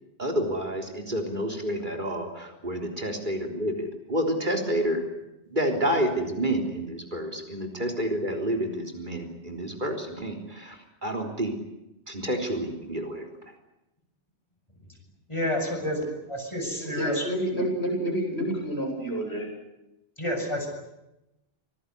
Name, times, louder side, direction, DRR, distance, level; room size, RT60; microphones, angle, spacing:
voice 1, 0.2-5.0 5.5-11.6 12.1-13.3, equal, 40° right, 3 dB, 3.9 m, -29 dB
voice 2, 15.3-17.2 20.2-20.7, equal, 25° left, 2 dB, 7.8 m, -29 dB
voice 3, 16.7-19.5, right 1 dB, 60° left, 1 dB, 8.3 m, -29 dB
25.5 x 19.0 x 9.6 m, 0.91 s
omnidirectional pair, 1.2 m